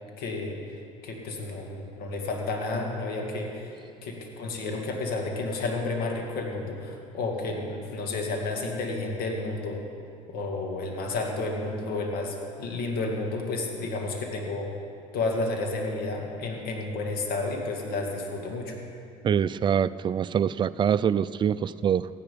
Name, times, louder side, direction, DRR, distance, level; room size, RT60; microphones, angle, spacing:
voice 1, 0.2-0.6 1.0-9.8 10.3-14.7 15.1-18.8, left 3 dB, 70° left, 1 dB, 2.2 m, -31 dB
voice 2, 19.2-22.1, right 8 dB, 30° right, 15 dB, 0.4 m, -24 dB
14.5 x 10.5 x 5.3 m, 2.5 s
supercardioid pair, 80°, 16 cm